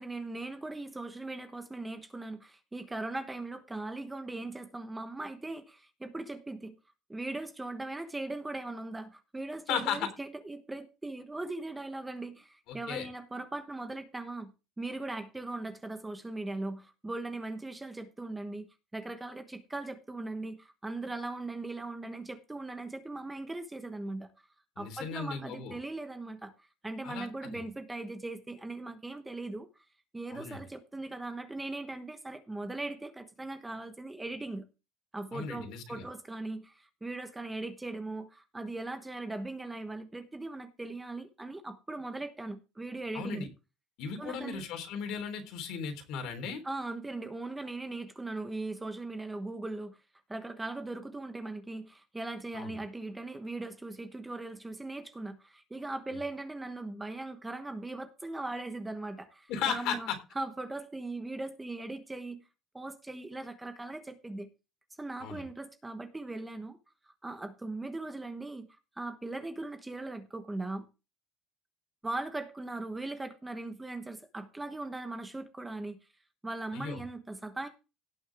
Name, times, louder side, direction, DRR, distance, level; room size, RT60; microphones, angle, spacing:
voice 1, 0.0-6.7 7.1-14.5 14.8-18.7 18.9-24.3 24.8-26.5 26.8-29.7 30.1-34.6 35.1-43.5 44.2-44.6 46.6-50.0 50.3-62.4 62.7-64.5 65.0-66.8 67.2-68.7 69.0-70.8 72.0-76.0 76.4-77.7, right 2 dB, 10° right, 8 dB, 1.1 m, -39 dB
voice 2, 9.7-10.1 12.7-13.1 24.8-25.8 27.0-27.6 30.3-30.6 35.3-36.0 43.1-43.5 44.0-46.6 52.5-52.8 59.5-60.2 65.2-65.4 76.7-77.0, left 7 dB, 60° left, 6 dB, 3.5 m, -36 dB
17.5 x 6.3 x 3.5 m, 0.29 s
cardioid pair, 165°, 0 cm